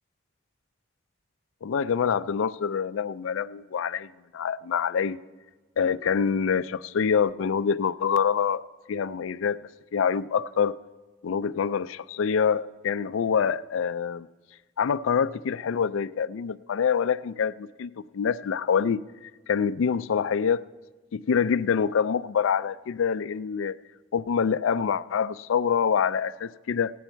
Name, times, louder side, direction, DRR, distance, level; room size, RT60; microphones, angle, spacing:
voice 1, 1.6-5.2 5.8-8.6 8.9-9.6 9.9-10.8 11.2-14.3 14.8-19.0 19.5-20.6 21.1-23.7 24.1-26.9, left 6 dB, 80° left, 15 dB, 0.4 m, -26 dB
16.0 x 9.2 x 4.4 m, 1.3 s
head